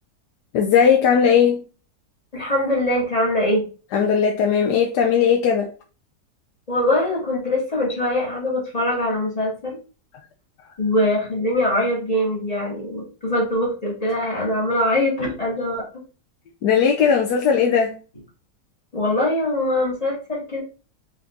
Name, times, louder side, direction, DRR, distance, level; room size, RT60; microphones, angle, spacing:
voice 1, 0.5-1.6 3.9-5.7 16.6-18.0, left 7 dB, 85° left, 1.2 m, -18 dB
voice 2, 2.3-3.6 6.7-9.8 10.8-15.8 18.9-20.6, left 1 dB, 25° left, 1.9 m, -22 dB
5.4 x 3.7 x 2.5 m
omnidirectional pair, 1.7 m